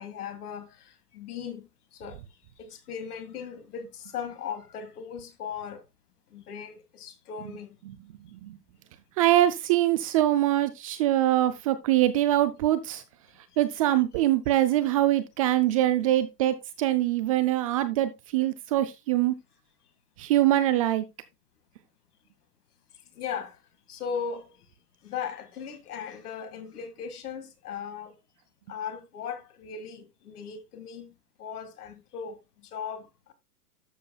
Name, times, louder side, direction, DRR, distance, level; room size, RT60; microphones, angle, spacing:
voice 1, 0.0-5.8 6.3-7.8 23.1-23.6 23.9-24.6 25.0-28.1 28.7-31.1 31.4-33.3, left 7 dB, 70° left, 2.1 m, -38 dB
voice 2, 9.2-13.0 13.6-19.3 20.2-21.1, right 14 dB, 25° right, 0.3 m, -23 dB
12.5 x 7.4 x 2.3 m
hypercardioid pair, 115°, 47 cm